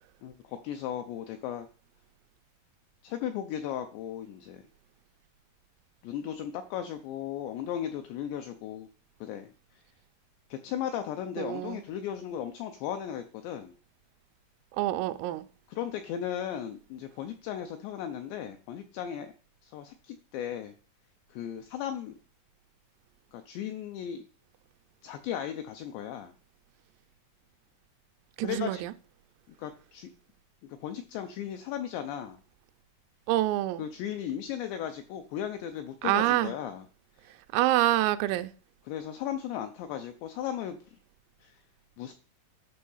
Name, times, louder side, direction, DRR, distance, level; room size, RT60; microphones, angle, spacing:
voice 1, 0.2-1.7 3.0-4.7 6.0-8.9 9.2-9.5 10.5-13.8 15.7-19.3 19.6-20.7 21.3-22.1 23.3-24.2 25.0-26.3 28.4-28.8 29.5-30.1 30.6-32.4 33.8-36.9 38.9-41.0 41.4-41.6 42.0-42.1, left 10 dB, 85° left, 2.5 m, -36 dB
voice 2, 11.4-11.8 14.8-15.5 28.4-28.9 33.3-33.8 36.0-36.5 37.5-38.5, right 15 dB, 85° right, 3.2 m, -26 dB
11.0 x 6.2 x 5.6 m
omnidirectional pair, 5.9 m